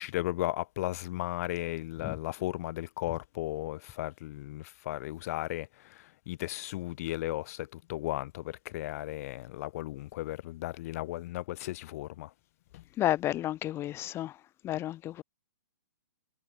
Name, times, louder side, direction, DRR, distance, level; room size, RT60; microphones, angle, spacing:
voice 1, 0.0-12.3 12.7-12.8, left 16 dB, 50° left, 5.4 m, -35 dB
voice 2, 13.0-14.3 14.6-15.2, left 13 dB, 25° left, 2.1 m, -31 dB
hypercardioid pair, 140°, 11 cm